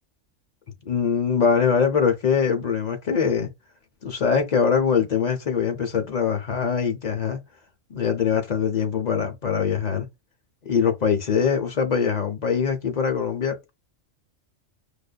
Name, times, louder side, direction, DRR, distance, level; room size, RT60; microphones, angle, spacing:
voice 1, 0.9-3.5 4.0-7.4 7.9-10.1 10.7-13.6, left 6 dB, 50° left, 0.5 m, -23 dB
4.8 x 2.5 x 2.2 m
omnidirectional pair, 1.3 m